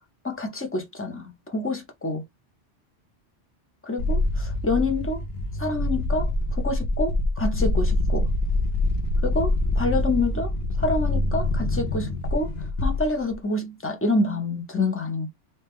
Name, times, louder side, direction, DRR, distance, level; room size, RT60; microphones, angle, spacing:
voice 1, 0.2-2.2 3.9-5.2 5.6-8.3 9.2-10.5 10.8-12.5 12.8-15.3, left 2 dB, 15° left, 0.4 m, -27 dB
sound 1, 4.0-13.4, left 2 dB, 65° left, 0.8 m, -25 dB
2.7 x 2.2 x 3.5 m
omnidirectional pair, 1.2 m